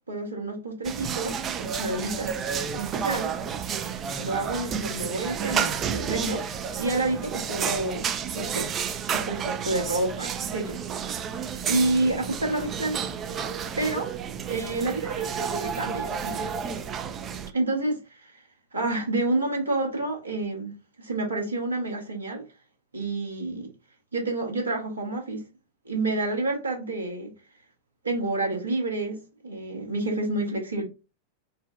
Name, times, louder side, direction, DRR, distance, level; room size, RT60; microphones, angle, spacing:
voice 1, 0.1-2.3 2.7-3.4 4.2-6.4 6.8-8.1 8.3-8.7 9.1-10.8 11.1-11.3 11.7-13.0 13.8-14.1 14.5-16.5 17.5-18.4 18.7-20.7 21.0-22.4 22.9-23.7 24.1-25.4 25.8-27.3 28.0-30.8, right 2 dB, 75° right, 1.1 m, -29 dB
sound 1, 0.8-17.5, right 7 dB, 30° right, 0.3 m, -31 dB
3.8 x 2.0 x 2.3 m
figure-of-eight pair, 90°, 0 cm